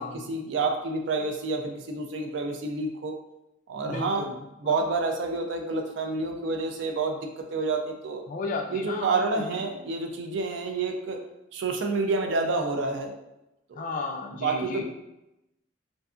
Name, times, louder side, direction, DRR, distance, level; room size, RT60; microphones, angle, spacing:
voice 1, 0.3-3.1 3.7-4.3 4.6-8.2 8.7-11.2 11.5-13.2 13.7-13.8 14.4-14.8, right 3 dB, 65° right, 4 dB, 0.4 m, -28 dB
voice 2, 3.8-4.3 4.6-4.7 8.3-9.6 13.7-14.8, left 3 dB, 40° left, 3 dB, 0.3 m, -34 dB
2.6 x 2.3 x 2.4 m, 0.90 s
head